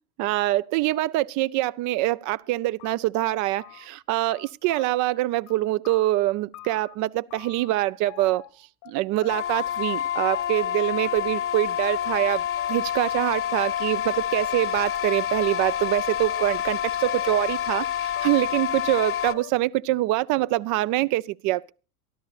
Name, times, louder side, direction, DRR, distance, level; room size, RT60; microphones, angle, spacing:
voice 1, 0.2-8.4 8.9-12.4 12.7-21.7, right 17 dB, 45° right, 0.6 m, -25 dB
sound 1, 2.4-2.5 2.8-4.0 4.3-5.2 5.5-6.9 7.3-7.8 8.1-8.9 9.2-9.7 9.9-10.7 11.0-11.6 11.8-12.3 12.6-13.0 13.3-13.4 13.7-13.9 14.4-14.9 15.1-16.8 17.0-17.9 18.2-18.6 18.9-19.0 19.3-19.8, left 15 dB, 50° left, 1.3 m, -45 dB
sound 2, 9.3-19.3, left 10 dB, 30° left, 1.0 m, -28 dB
23.5 x 12.0 x 2.5 m
hypercardioid pair, 85°, 43 cm